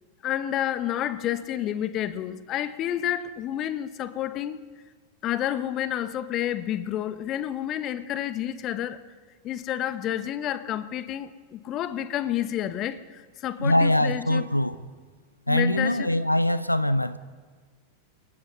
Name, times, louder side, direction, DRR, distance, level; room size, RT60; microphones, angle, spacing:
voice 1, 0.2-4.6 5.2-9.0 9.4-14.4 15.5-16.1, left 11 dB, 35° left, 13 dB, 1.1 m, -30 dB
voice 2, 13.6-14.8 15.5-17.2, left 1 dB, 85° left, 15 dB, 0.7 m, -23 dB
29.5 x 19.0 x 5.5 m, 1.5 s
figure-of-eight pair, 90°, 0 cm